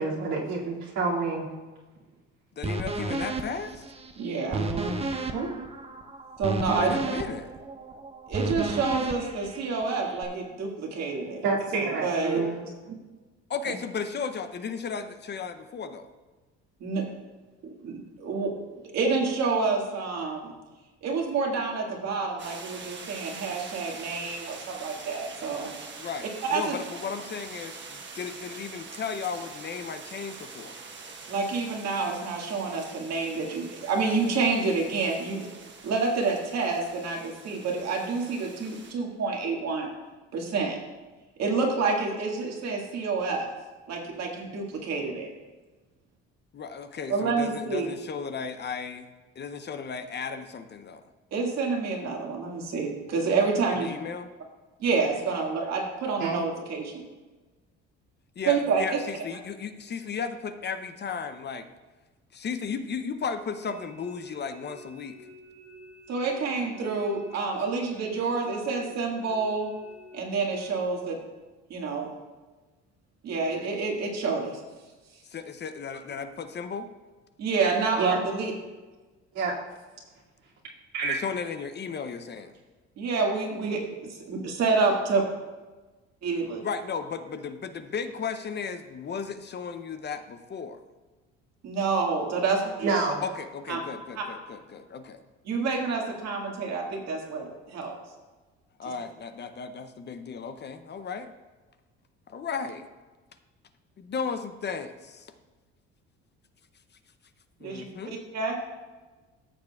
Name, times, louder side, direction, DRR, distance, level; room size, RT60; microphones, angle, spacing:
voice 1, 0.0-1.4 4.5-4.9 5.3-5.5 11.4-12.9 56.2-56.4 78.0-78.2 79.3-79.6 80.9-81.2 83.6-83.8 92.8-93.2, right 4 dB, 75° right, -5 dB, 2.4 m, -28 dB
voice 2, 2.6-3.8 6.8-7.5 13.5-16.1 26.0-30.8 46.5-49.1 49.4-51.0 53.7-54.3 58.4-61.7 62.3-65.2 75.2-76.9 81.0-82.5 86.4-90.8 93.2-95.2 98.8-101.3 102.3-102.9 104.0-105.3 107.6-108.1, left 6 dB, 35° left, 9 dB, 0.6 m, -35 dB
sound 1, 2.6-10.2, right 3 dB, 20° right, 0.7 m, -33 dB
voice 3, 4.2-4.6 6.4-6.9 8.3-11.4 12.0-12.4 16.8-17.0 17.6-18.5 18.8-20.5 21.0-25.7 26.5-26.8 31.3-35.5 35.8-39.9 40.3-40.8 41.4-43.5 43.9-45.3 47.1-47.9 51.3-53.9 54.8-57.0 58.5-59.0 66.1-69.7 70.1-71.2 71.7-72.1 73.2-74.6 77.4-78.5 83.0-83.8 84.3-85.2 86.2-86.6 91.6-92.9 93.7-93.8 94.2-94.3 95.5-98.0 98.8-98.9 107.6-108.6, right 4 dB, 60° right, 0 dB, 1.9 m, -28 dB
sound 2, 22.4-38.9, right 4 dB, 40° right, 1.2 m, -44 dB
sound 3, 63.6-70.8, equal, 5° right, 2.0 m, -50 dB
14.0 x 6.6 x 2.4 m, 1.2 s
supercardioid pair, 90°, 29 cm